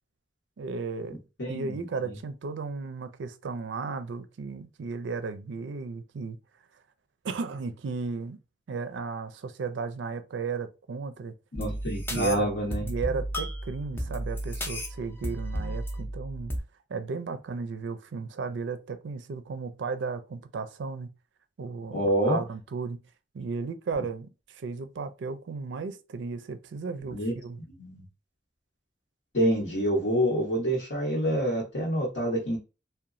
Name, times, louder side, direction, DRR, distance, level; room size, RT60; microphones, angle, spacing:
voice 1, 0.6-1.2 1.5-6.4 7.2-8.4 8.7-11.3 12.1-12.5 12.8-16.5 16.9-21.1 21.6-23.0 23.3-27.6, right 4 dB, 80° right, 0.4 m, -34 dB
voice 2, 1.4-2.1 11.5-12.9 21.9-22.4 27.1-27.3 27.8-28.0 29.3-32.6, equal, 90° left, 1.1 m, -27 dB
sound 1, 11.6-16.6, equal, 15° left, 0.4 m, -34 dB
2.9 x 2.2 x 2.5 m
head